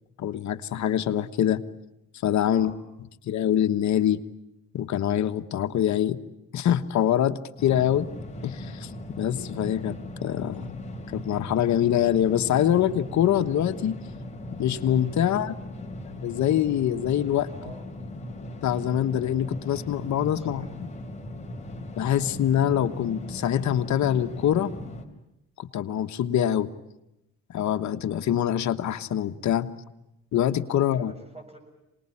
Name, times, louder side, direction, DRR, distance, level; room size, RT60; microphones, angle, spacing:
voice 1, 0.2-1.6 2.2-2.7 3.2-4.2 4.7-6.2 6.5-8.1 8.4-8.9 9.2-10.0 10.2-10.8 11.1-14.0 14.6-15.5 16.1-17.5 18.6-20.6 22.0-24.7 25.6-26.7 27.5-29.7 30.3-31.1, left 10 dB, 70° left, 7 dB, 1.4 m, -24 dB
voice 2, 2.5-2.8 17.5-17.8 20.4-20.7 30.9-31.6, right 2 dB, 20° right, 5 dB, 7.1 m, -47 dB
sound 1, 7.6-25.1, left 1 dB, 20° left, 4.0 m, -38 dB
26.0 x 19.5 x 9.9 m, 0.90 s
cardioid pair, 90°, 30 cm